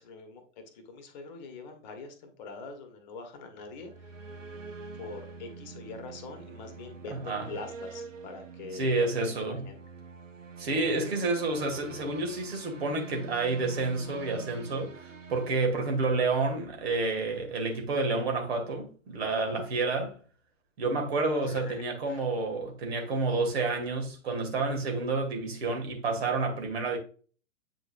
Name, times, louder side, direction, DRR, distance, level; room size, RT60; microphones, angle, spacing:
voice 1, 0.0-4.2 5.0-9.8 19.3-19.6 21.4-21.8 22.1-22.3, left 4 dB, 35° left, 1.3 m, -44 dB
sound 1, 3.6-16.5, right 5 dB, 70° right, 1.1 m, -45 dB
voice 2, 7.1-7.5 8.7-9.6 10.6-14.9 15.3-20.2 20.8-27.0, right 3 dB, 50° right, 2.3 m, -29 dB
8.2 x 5.0 x 2.6 m
figure-of-eight pair, 115°, 39 cm